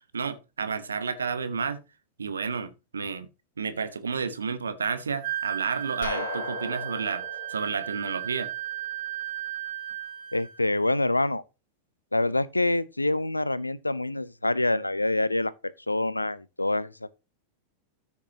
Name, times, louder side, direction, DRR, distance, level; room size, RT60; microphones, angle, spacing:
voice 1, 0.1-1.8 2.2-3.3 3.6-8.5, right 5 dB, 70° right, 0.9 m, -31 dB
Wind instrument woodwind instrument, 5.2-10.7, right 12 dB, 55° right, 1.7 m, -35 dB
sound 1, 6.0-8.8, left 3 dB, 55° left, 2.3 m, -37 dB
voice 2, 10.3-11.4 12.1-17.2, left 2 dB, 85° left, 0.5 m, -26 dB
13.5 x 5.9 x 2.9 m
figure-of-eight pair, 90°, 0 cm